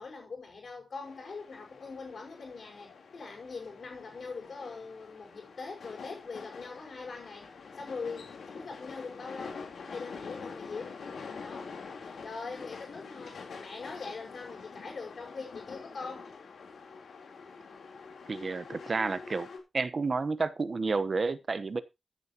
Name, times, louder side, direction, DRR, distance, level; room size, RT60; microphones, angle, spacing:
voice 1, 0.0-7.5 7.7-11.0 11.4-11.7 12.2-16.3, left 4 dB, 50° left, 5.7 m, -42 dB
sound 1, 1.0-19.6, left 5 dB, 75° left, 3.5 m, -46 dB
voice 2, 18.3-19.5 19.7-21.8, right 4 dB, 35° right, 1.0 m, -30 dB
15.0 x 9.9 x 3.0 m
wide cardioid pair, 175°, 0 cm